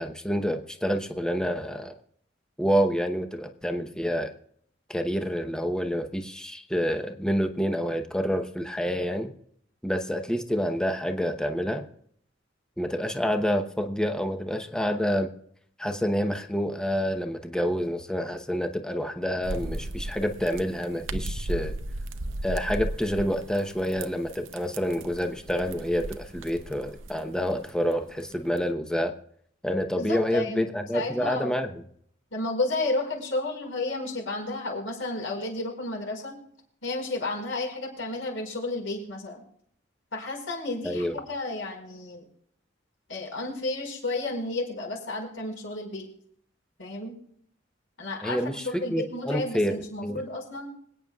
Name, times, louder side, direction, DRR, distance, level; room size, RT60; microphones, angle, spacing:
voice 1, 0.0-1.9 2.6-4.3 4.9-9.3 9.8-11.9 12.8-15.3 15.8-21.7 22.4-29.1 29.6-31.7 40.8-41.2 48.2-48.6 48.9-49.7 50.0-50.2, equal, 5° left, 6 dB, 0.9 m, -28 dB
sound 1, 19.4-28.7, right 1 dB, 90° right, 0.8 m, -36 dB
voice 2, 29.9-30.7 30.9-31.5 32.3-36.4 36.8-39.4 40.1-42.3 43.1-46.1 46.8-47.1 48.0-50.7, left 2 dB, 80° left, 0 dB, 5.1 m, -32 dB
26.0 x 9.1 x 2.4 m, 0.64 s
head